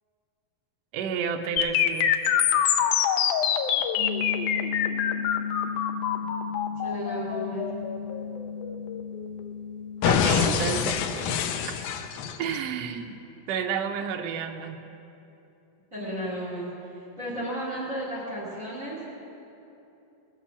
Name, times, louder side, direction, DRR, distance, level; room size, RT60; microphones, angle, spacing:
voice 1, 0.9-2.1 10.0-10.9 12.4-13.1 13.5-14.8, right 7 dB, 85° right, 5 dB, 1.4 m, -30 dB
sound 1, 1.6-9.5 10.0-12.6, left 8 dB, 80° left, 1.9 m, -25 dB
sound 2, 4.0-10.4, left 6 dB, 50° left, 0.8 m, -35 dB
voice 2, 6.8-7.7 10.2-10.7 15.9-16.7 17.2-19.1, equal, 25° right, -6 dB, 2.4 m, -34 dB
20.5 x 7.3 x 7.1 m, 2.9 s
omnidirectional pair, 4.1 m